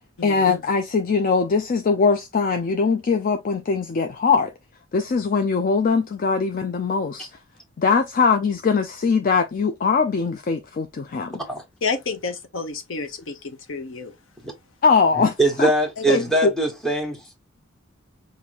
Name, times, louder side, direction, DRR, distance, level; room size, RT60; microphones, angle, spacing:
voice 1, 0.2-4.5 4.9-7.3 7.8-11.4 12.9-13.0 14.8-15.7 16.1-16.5, left 5 dB, 40° left, 0.4 m, -21 dB
voice 2, 11.8-14.1 16.0-16.3, left 4 dB, 65° left, 0.8 m, -30 dB
voice 3, 15.2-17.3, right 2 dB, ahead, 1.2 m, -22 dB
5.3 x 2.7 x 2.9 m
head